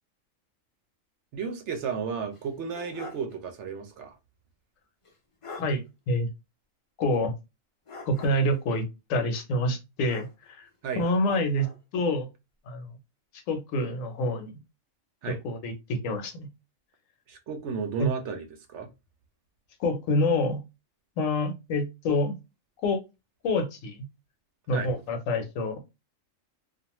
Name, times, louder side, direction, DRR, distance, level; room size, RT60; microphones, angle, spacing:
voice 1, 1.3-4.1 10.8-11.0 15.2-15.4 17.3-18.9 24.7-24.9, right 5 dB, 70° right, 0.8 m, -33 dB
sound 1, 2.3-3.3 3.7-3.8 5.0-5.1 5.4-5.7 7.9-8.6 10.0-10.6 11.0-11.8, left 2 dB, 50° left, 0.4 m, -44 dB
voice 2, 5.5-6.3 7.0-7.3 8.0-8.8 9.1-10.7 10.9-11.7 11.9-12.3 12.7-12.9 13.5-14.5 15.3-16.5 18.0-18.1 19.8-20.6 21.2-22.3 22.8-23.0 23.4-24.0 24.7-25.8, left 1 dB, 80° left, 1.0 m, -27 dB
2.5 x 2.3 x 2.9 m
omnidirectional pair, 1.4 m